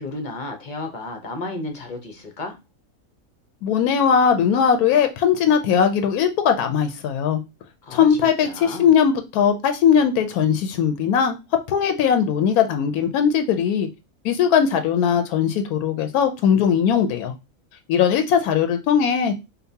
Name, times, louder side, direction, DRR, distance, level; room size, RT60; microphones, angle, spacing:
voice 1, 0.0-2.6 7.8-8.9, left 2 dB, 45° left, 4 dB, 0.7 m, -33 dB
voice 2, 3.6-7.4 7.9-11.4 11.7-13.9 14.2-17.3 17.9-19.3, left 7 dB, 85° left, 7 dB, 1.1 m, -19 dB
5.1 x 2.3 x 2.7 m, 0.25 s
omnidirectional pair, 1.5 m